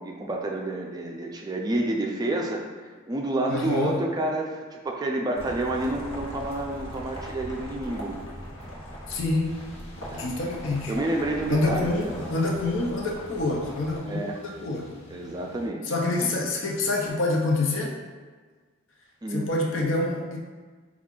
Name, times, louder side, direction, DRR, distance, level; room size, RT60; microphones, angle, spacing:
voice 1, 0.0-8.2 10.1-10.3 10.9-12.2 14.1-14.4 15.1-15.9 16.2-16.3 19.2-19.5, right 2 dB, 20° right, 0 dB, 0.3 m, -29 dB
voice 2, 3.5-3.9 9.1-9.6 10.1-10.9 11.5-14.9 15.8-17.9 19.3-20.4, left 2 dB, 70° left, 0 dB, 0.6 m, -26 dB
sound 1, 5.3-14.0, equal, 90° left, 1.0 m, -39 dB
sound 2, 9.4-15.7, right 1 dB, 30° left, 0.8 m, -48 dB
4.5 x 2.4 x 3.7 m, 1.5 s
head